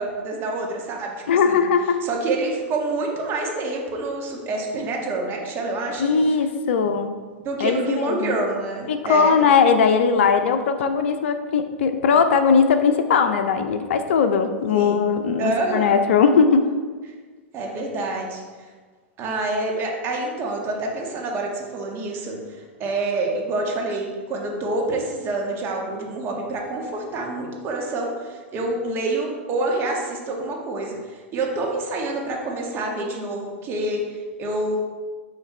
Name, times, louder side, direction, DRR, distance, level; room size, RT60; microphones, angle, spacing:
voice 1, 0.0-1.1 1.4-1.7 2.0-6.1 6.8-6.9 7.4-9.4 14.7-15.0 15.4-15.9 17.5-18.4 19.2-34.8, right 2 dB, 35° right, 0 dB, 1.5 m, -27 dB
voice 2, 1.3-2.0 6.0-7.1 7.6-8.4 8.9-16.7, left 5 dB, 65° left, 8 dB, 0.5 m, -19 dB
8.9 x 3.2 x 4.3 m, 1.4 s
hypercardioid pair, 100°, 7 cm